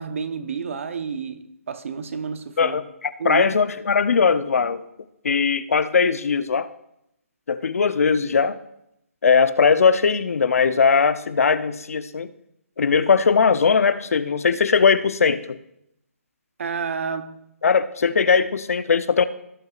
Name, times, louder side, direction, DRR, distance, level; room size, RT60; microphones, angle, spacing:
voice 1, 0.0-2.8 3.2-3.5 16.6-17.4, right 6 dB, 60° right, 0.9 m, -30 dB
voice 2, 2.6-4.8 5.2-6.7 7.5-8.6 9.2-12.3 12.8-15.6 17.6-19.2, left 5 dB, 75° left, 0.7 m, -19 dB
17.0 x 7.9 x 2.5 m
hypercardioid pair, 160°, 8 cm